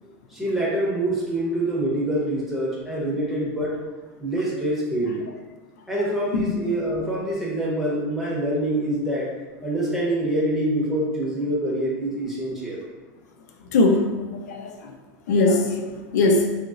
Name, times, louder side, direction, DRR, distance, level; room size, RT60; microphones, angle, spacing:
voice 1, 0.3-3.8 4.2-5.2 5.9-9.3 9.6-12.8, right 1 dB, 5° right, -6 dB, 0.9 m, -25 dB
voice 2, 13.7-14.7 15.3-16.6, left 2 dB, 85° left, 4 dB, 0.4 m, -20 dB
3.7 x 2.0 x 2.5 m, 1.2 s
supercardioid pair, 120°, 9 cm